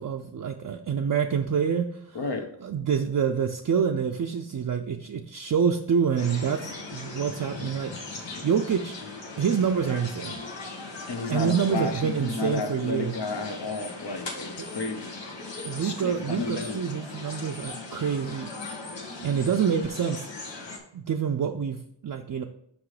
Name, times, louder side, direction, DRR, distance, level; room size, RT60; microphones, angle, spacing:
voice 1, 0.0-2.2 2.6-8.9 9.4-10.4 11.3-13.1 14.6-14.7 15.6-18.5 19.2-20.3 20.9-22.4, right 7 dB, 50° right, 3 dB, 0.5 m, -27 dB
voice 2, 2.1-2.4 11.1-15.1 15.8-16.8, left 3 dB, 65° left, 5 dB, 1.1 m, -32 dB
sound 1, 6.2-20.8, left 3 dB, 85° left, 1.4 m, -39 dB
6.0 x 5.0 x 4.9 m, 0.71 s
wide cardioid pair, 75°, 42 cm